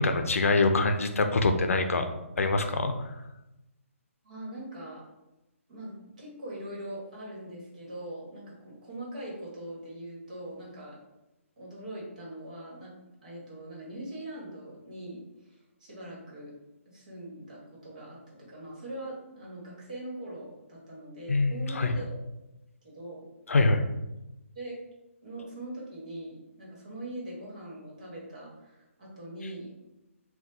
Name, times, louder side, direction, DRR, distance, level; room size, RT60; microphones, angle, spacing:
voice 1, 0.0-2.1 2.4-2.9 21.3-21.9 23.5-23.8, left 3 dB, 75° left, 7 dB, 0.5 m, -24 dB
voice 2, 4.2-5.0 5.7-11.0 11.6-12.9 13.2-16.5 16.8-22.2 22.8-23.2 24.5-24.8 25.2-29.7, right 1 dB, 35° right, -4 dB, 1.4 m, -42 dB
4.4 x 2.3 x 3.9 m, 0.97 s
hypercardioid pair, 175°, 8 cm